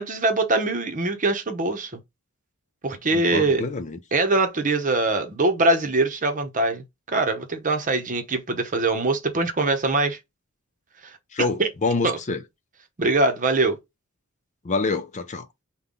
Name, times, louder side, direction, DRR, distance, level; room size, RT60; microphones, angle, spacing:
voice 1, 0.0-2.0 2.8-3.6 4.1-10.2 11.6-11.7 12.0-12.2 13.0-13.8, right 2 dB, 35° right, 0.8 m, -23 dB
voice 2, 3.1-4.0 11.3-12.4 14.6-15.5, left 3 dB, 35° left, 0.4 m, -26 dB
5.3 x 2.3 x 3.7 m
head